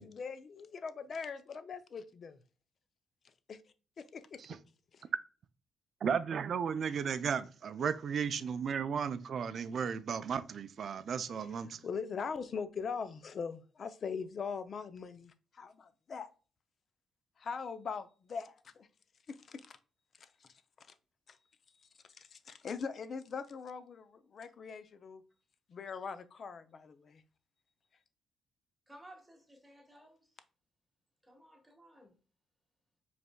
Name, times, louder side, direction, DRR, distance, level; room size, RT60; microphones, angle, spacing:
voice 1, 0.0-2.4 3.5-3.6 4.0-4.4 4.9-5.0 11.8-16.3 17.4-18.9 19.3-19.8 20.2-20.5 20.8-20.9 21.3-21.4 22.2-25.2 25.7-27.2, left 5 dB, 50° left, 0.5 m, -41 dB
voice 2, 6.0-11.8, right 7 dB, 55° right, 0.4 m, -34 dB
voice 3, 28.9-30.3 31.2-32.1, right 1 dB, 10° right, 1.5 m, -57 dB
5.0 x 3.4 x 2.2 m
cardioid pair, 95°, 0 cm